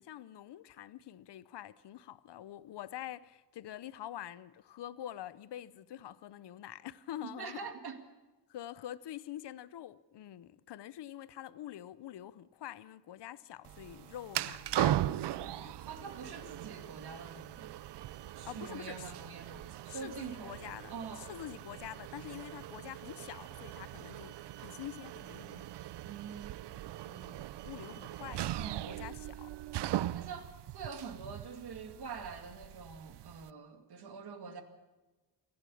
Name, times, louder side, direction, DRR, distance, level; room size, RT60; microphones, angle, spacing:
voice 1, 0.0-7.7 8.5-15.8 16.3-16.4 18.4-19.1 19.9-25.7 27.1-29.6 34.5-34.6, left 12 dB, 80° left, 0.8 m, -46 dB
voice 2, 7.4-8.0 15.9-17.7 18.3-20.6 20.9-21.3 26.0-26.8 28.5-28.9 30.1-34.6, right 5 dB, 65° right, 2.4 m, -45 dB
sound 1, 13.6-33.5, right 13 dB, 85° right, 0.6 m, -39 dB
28.0 x 11.5 x 8.6 m
wide cardioid pair, 120°, 41 cm